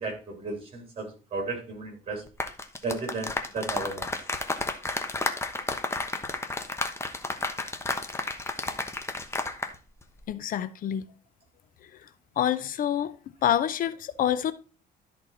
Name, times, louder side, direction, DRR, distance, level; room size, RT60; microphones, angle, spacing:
voice 1, 0.0-2.2 2.8-4.1 5.9-6.0, right 3 dB, 35° right, 3.6 m, -34 dB
sound 1, 2.3-9.8 10.0-10.2, left 2 dB, 15° left, 1.1 m, -32 dB
voice 2, 10.3-11.0 12.4-13.1 13.4-14.5, left 10 dB, 55° left, 0.6 m, -26 dB
13.0 x 4.3 x 4.1 m
cardioid pair, 110°, 17 cm